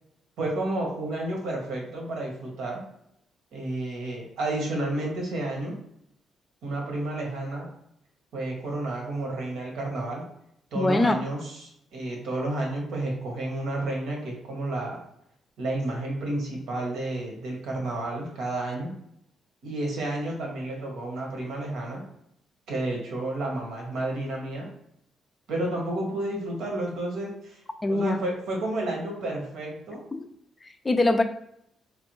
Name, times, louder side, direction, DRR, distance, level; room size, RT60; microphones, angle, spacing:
voice 1, 0.4-2.8 3.5-5.8 6.6-7.7 8.3-10.2 10.7-15.0 15.6-19.0 19.6-22.0 22.7-24.7 25.5-27.6 27.9-30.0, right 2 dB, 80° right, -1 dB, 1.0 m, -31 dB
voice 2, 10.8-11.2 27.8-28.2 30.1-30.3 30.8-31.2, left 2 dB, 25° left, 7 dB, 0.3 m, -22 dB
3.2 x 2.2 x 3.0 m, 0.76 s
cardioid pair, 90°, 0 cm